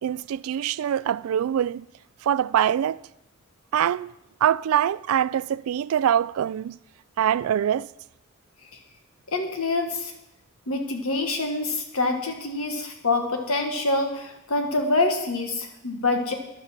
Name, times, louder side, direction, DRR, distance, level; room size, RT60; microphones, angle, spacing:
voice 1, 0.0-1.9 2.2-3.0 3.7-4.1 4.4-6.8 7.2-7.9, right 9 dB, 80° right, 0.3 m, -24 dB
voice 2, 9.3-10.1 10.7-16.3, left 2 dB, 85° left, 1.8 m, -26 dB
13.5 x 11.0 x 4.6 m
head